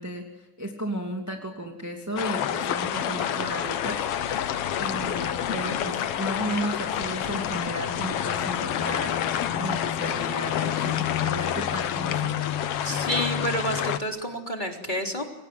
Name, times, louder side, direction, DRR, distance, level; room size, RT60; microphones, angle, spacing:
voice 1, 0.0-4.0 4.7-12.4, right 1 dB, 5° right, 2 dB, 2.5 m, -34 dB
sound 1, 2.2-14.0, left 10 dB, 60° left, 1.8 m, -28 dB
voice 2, 12.8-15.2, equal, 15° left, 2 dB, 3.4 m, -29 dB
29.0 x 25.5 x 7.9 m, 1.1 s
omnidirectional pair, 3.5 m